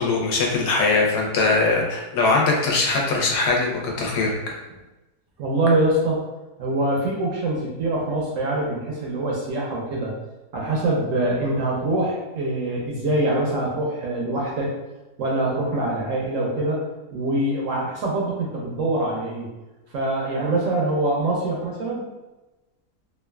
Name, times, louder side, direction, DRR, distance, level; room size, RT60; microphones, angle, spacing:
voice 1, 0.0-4.6, left 3 dB, 75° left, -1 dB, 1.2 m, -21 dB
voice 2, 5.4-6.2 6.6-10.1 10.5-14.7 15.2-16.8 17.1-19.5 19.9-22.0, right 2 dB, 65° right, -3 dB, 0.8 m, -24 dB
3.1 x 2.3 x 2.2 m, 1.0 s
omnidirectional pair, 1.8 m